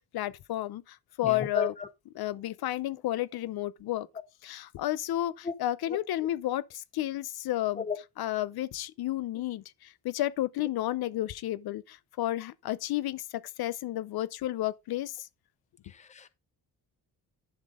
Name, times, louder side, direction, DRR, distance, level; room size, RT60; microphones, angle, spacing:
voice 1, 0.1-1.7 2.1-4.1 4.4-7.9 8.2-15.3, left 14 dB, 70° left, 0.7 m, -32 dB
voice 2, 1.2-1.7 5.5-5.6 7.8-8.0 16.2-16.3, left 5 dB, 20° left, 0.6 m, -32 dB
11.0 x 5.9 x 3.6 m
cardioid pair, 140°, 39 cm